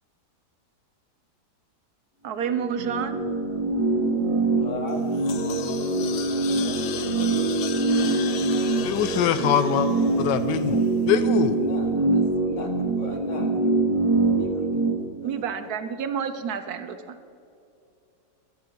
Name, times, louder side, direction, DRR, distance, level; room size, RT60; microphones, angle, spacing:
voice 1, 2.2-3.2 15.2-17.2, right 7 dB, 65° right, 1.1 m, -29 dB
sound 1, 2.4-14.9, right 3 dB, 50° right, 2.2 m, -24 dB
voice 2, 4.5-7.5 7.8-8.9 9.8-10.4 11.6-13.6 14.3-14.6 15.2-15.3, left 2 dB, 45° left, 1.7 m, -38 dB
sound 2, 4.9-11.2, left 8 dB, 70° left, 1.3 m, -37 dB
voice 3, 8.8-9.9 10.2-11.6, left 8 dB, 90° left, 1.3 m, -23 dB
13.0 x 10.5 x 4.6 m
omnidirectional pair, 1.9 m